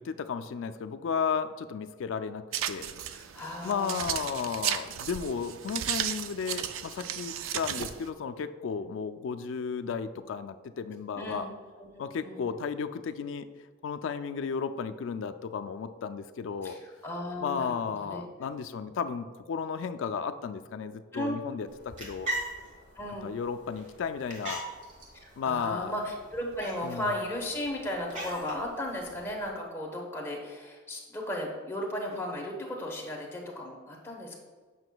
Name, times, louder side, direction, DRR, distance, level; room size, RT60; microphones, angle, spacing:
voice 1, 0.0-2.9 3.6-11.5 12.0-13.5 13.8-16.8 17.4-22.3 23.2-24.6 25.4-25.9 26.8-27.1, left 6 dB, 70° left, 10 dB, 0.3 m, -34 dB
sound 1, 2.5-8.1, right 10 dB, 80° right, 0.3 m, -34 dB
voice 2, 3.1-4.1 11.2-11.5 11.8-12.5 16.6-18.2 21.1-21.4 23.0-23.3 25.2-34.3, left 1 dB, 10° left, -1 dB, 0.9 m, -35 dB
sound 2, 21.7-29.5, right 1 dB, 35° right, 1.3 m, -41 dB
7.8 x 5.7 x 2.2 m, 1.4 s
head